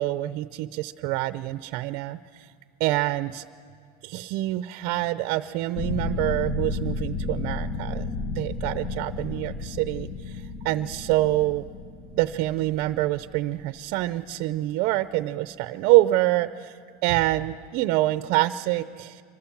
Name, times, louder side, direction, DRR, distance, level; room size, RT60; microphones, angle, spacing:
voice 1, 0.0-2.5 2.8-3.4 4.0-8.1 8.3-11.6 12.1-19.2, right 16 dB, 55° right, 12 dB, 0.6 m, -26 dB
sound 1, 5.8-14.2, left 3 dB, 35° left, 1.0 m, -33 dB
25.0 x 24.5 x 7.3 m, 2.1 s
cardioid pair, 165°, 19 cm